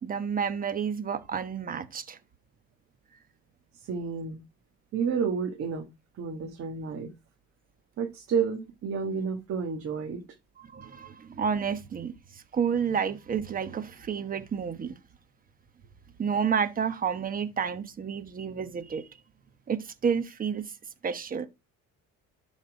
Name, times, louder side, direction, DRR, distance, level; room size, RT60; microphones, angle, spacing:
voice 1, 0.0-2.2 10.6-12.1 12.5-14.9 16.2-19.1 19.7-20.6 21.0-21.5, right 7 dB, 30° right, 1.1 m, -30 dB
voice 2, 3.8-4.4 4.9-5.9 6.1-7.1 8.0-10.2, right 6 dB, 50° right, 1.6 m, -30 dB
11.5 x 4.3 x 4.8 m
cardioid pair, 135°, 29 cm